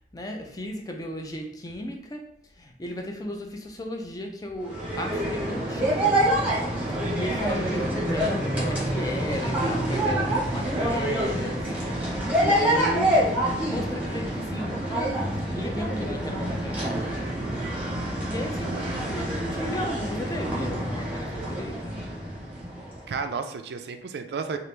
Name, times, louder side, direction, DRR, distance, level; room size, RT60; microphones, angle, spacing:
voice 1, 0.1-2.3 2.6-15.2 15.5-17.5 18.3-22.1, left 1 dB, 20° left, 3 dB, 0.4 m, -35 dB
sound 1, 4.6-23.1, right 1 dB, 10° right, 0.9 m, -27 dB
voice 2, 18.6-18.9 23.1-24.6, right 5 dB, 65° right, 7 dB, 0.3 m, -32 dB
3.0 x 2.4 x 3.3 m, 0.82 s
head